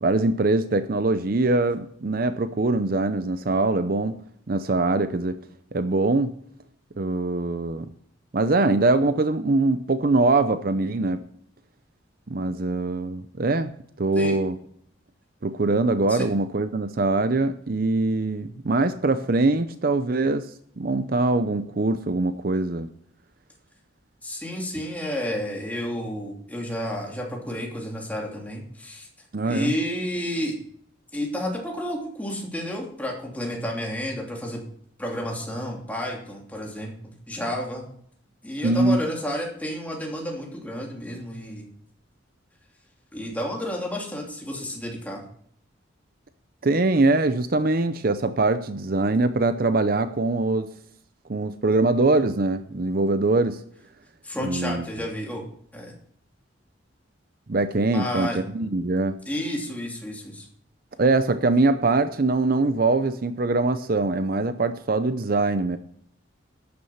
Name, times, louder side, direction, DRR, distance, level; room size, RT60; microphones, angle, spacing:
voice 1, 0.0-4.1 4.5-5.4 5.7-6.3 7.0-7.9 8.3-11.2 12.3-13.7 14.0-14.6 15.4-20.5 20.8-22.9 29.3-29.7 38.6-39.0 46.6-50.7 51.3-53.6 54.4-54.9 57.5-59.2 61.0-65.8, right 2 dB, 50° right, 11 dB, 0.6 m, -23 dB
voice 2, 24.2-29.1 29.4-30.6 31.1-34.6 35.0-37.9 38.4-41.6 43.1-45.2 54.2-55.4 55.7-55.9 57.9-58.4 59.3-60.5, equal, 10° left, -1 dB, 2.8 m, -31 dB
12.0 x 9.6 x 5.6 m, 0.65 s
head